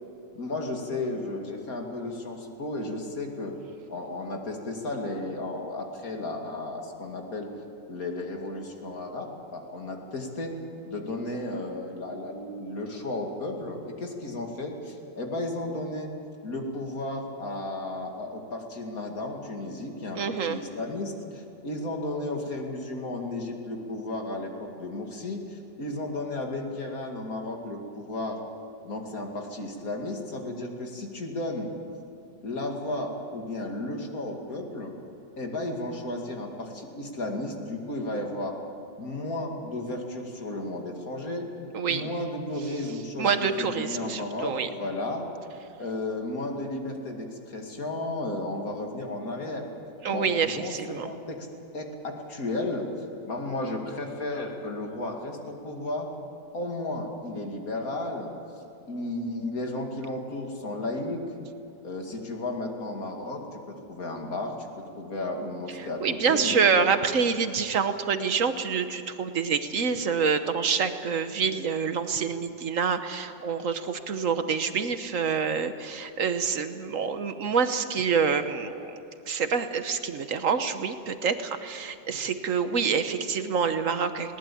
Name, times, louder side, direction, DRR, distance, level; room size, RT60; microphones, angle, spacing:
voice 1, 0.3-3.6 3.9-7.5 7.9-10.5 10.9-16.1 16.4-28.4 28.8-31.7 32.4-34.9 35.4-38.6 39.0-41.5 41.9-43.3 43.6-45.2 45.8-49.7 50.1-51.5 51.7-52.9 53.3-56.1 56.5-58.3 58.9-61.2 61.8-64.7 65.0-66.9, left 2 dB, 50° left, 2 dB, 2.8 m, -34 dB
voice 2, 20.1-20.6 41.7-42.0 43.2-44.7 50.0-51.1 65.7-84.4, right 6 dB, 50° right, 9 dB, 1.2 m, -27 dB
20.5 x 19.5 x 8.6 m, 2.8 s
omnidirectional pair, 2.0 m